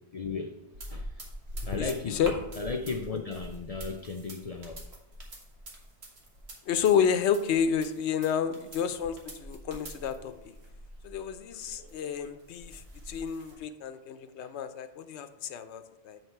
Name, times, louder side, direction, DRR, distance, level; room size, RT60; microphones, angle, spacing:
voice 1, 0.1-0.6 0.9-1.2 1.7-2.3 2.5-4.8 14.4-14.5, left 4 dB, 55° left, 4 dB, 0.4 m, -35 dB
sound 1, 0.7-13.5, right 1 dB, 70° right, 1.6 m, -44 dB
voice 2, 1.7-2.4 6.7-10.5 11.0-16.2, left 7 dB, 80° left, 11 dB, 0.9 m, -30 dB
8.0 x 4.5 x 4.4 m, 0.95 s
omnidirectional pair, 1.1 m